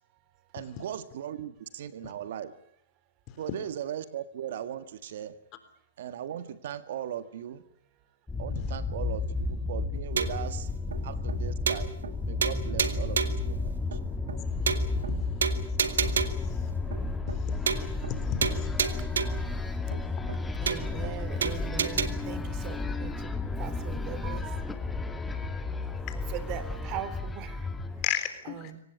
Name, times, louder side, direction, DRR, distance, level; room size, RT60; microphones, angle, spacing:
voice 1, 0.5-2.5 3.4-5.3 6.0-7.6 8.4-10.7 11.0-12.0 12.2-13.2 13.5-14.0, right 10 dB, 65° right, 12 dB, 1.8 m, -38 dB
sound 1, 8.3-28.1, left 3 dB, 10° left, 2.3 m, -32 dB
sound 2, 10.2-10.5 10.9-11.0 11.3-11.4 11.7-12.2 12.4-13.5 13.9-14.0 14.3-14.4 14.7-15.1 15.4-16.5 16.9-17.0 17.3-17.4 17.7-18.2 18.4-19.5 19.9-20.0 20.3-20.4 20.7-21.1 21.4-22.1, right 6 dB, 85° right, 2.1 m, -30 dB
voice 2, 16.1-16.6 17.3-17.5 18.1-18.8 26.1-26.2 28.0-28.7, left 12 dB, 35° left, 10 dB, 3.8 m, -34 dB
voice 3, 20.6-23.3 23.6-24.9 26.3-27.7 28.4-28.8, right 10 dB, 40° right, 13 dB, 3.2 m, -40 dB
24.5 x 18.5 x 9.7 m, 0.66 s
hypercardioid pair, 130°, 0 cm